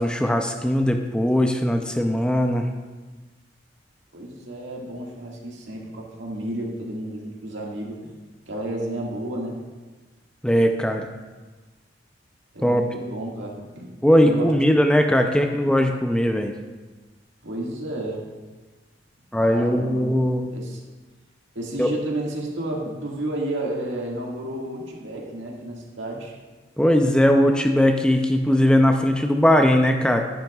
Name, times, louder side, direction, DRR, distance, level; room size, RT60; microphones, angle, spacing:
voice 1, 0.0-2.7 10.4-11.1 12.6-12.8 14.0-16.5 19.3-20.5 21.8-21.9 26.8-30.2, equal, 5° left, 4 dB, 0.5 m, -19 dB
voice 2, 4.1-8.1 8.5-9.6 12.5-13.9 14.2-14.8 17.4-18.2 19.4-20.1 20.5-20.8 21.5-26.3, right 1 dB, 85° right, -2 dB, 1.8 m, -31 dB
10.5 x 10.5 x 2.3 m, 1.3 s
head